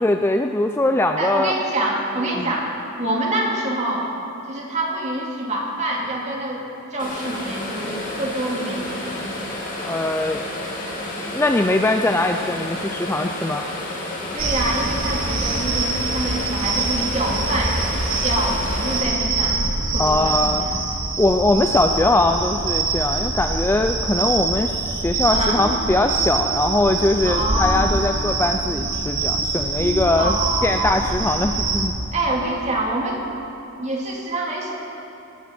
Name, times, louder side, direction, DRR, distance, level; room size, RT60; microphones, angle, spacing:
voice 1, 0.0-1.5 2.3-2.5 9.8-10.4 11.3-13.6 20.0-20.7 21.2-30.4 30.6-32.0, left 2 dB, 10° left, 5 dB, 0.3 m, -21 dB
voice 2, 1.2-4.1 4.5-9.2 14.3-17.8 18.2-19.6 19.9-20.8 25.3-25.6 27.2-27.8 30.2-31.0 32.1-33.2 33.8-34.7, right 1 dB, 30° right, -2 dB, 2.3 m, -26 dB
sound 1, 7.0-19.0, left 1 dB, 35° left, 2.6 m, -31 dB
sound 2, 14.4-31.9, right 3 dB, 60° right, 2.2 m, -24 dB
17.5 x 15.5 x 4.3 m, 3.0 s
head